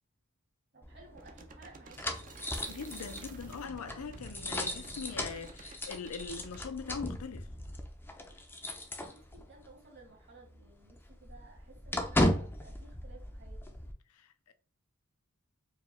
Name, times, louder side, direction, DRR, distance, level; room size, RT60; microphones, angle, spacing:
voice 1, 0.7-2.5 9.0-13.8, right 3 dB, 55° right, 1.6 m, -57 dB
sound 1, 0.8-9.7 10.0-10.1 10.5-13.9, left 1 dB, 10° left, 0.5 m, -36 dB
sound 2, 1.1-6.6, right 3 dB, 40° right, 0.5 m, -51 dB
voice 2, 2.7-7.5 14.1-14.5, left 5 dB, 80° left, 0.5 m, -42 dB
4.7 x 2.2 x 3.3 m
head